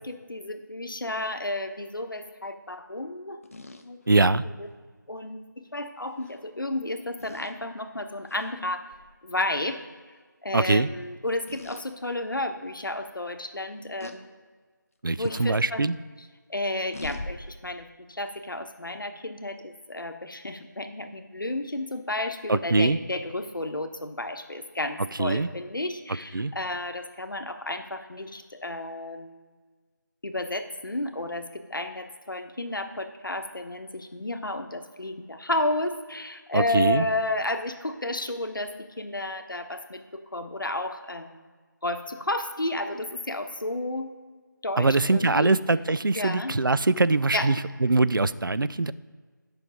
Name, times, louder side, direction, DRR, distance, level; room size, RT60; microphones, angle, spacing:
voice 1, 0.0-3.4 3.8-4.3 4.6-4.7 5.1-5.4 5.7-8.9 9.2-9.8 10.4-14.4 15.2-15.8 16.5-29.5 30.2-41.4 41.8-44.1 44.6-45.5 46.1-46.6 47.3-47.5, left 1 dB, 80° left, 8 dB, 1.0 m, -32 dB
sound 1, 3.4-4.5 6.2-6.4 7.2-7.5 8.3-8.5 8.9-9.1 11.5-11.9 12.5-12.6 14.0-14.2 15.2-15.5 16.9-17.3, left 2 dB, 45° left, 0.7 m, -40 dB
voice 2, 4.1-4.4 10.5-10.9 15.0-16.0 22.5-23.0 25.2-25.5 26.3-26.5 36.5-37.1 44.8-48.9, right 3 dB, 85° right, 16 dB, 0.5 m, -23 dB
10.0 x 5.9 x 5.0 m, 1.5 s
figure-of-eight pair, 165°, 11 cm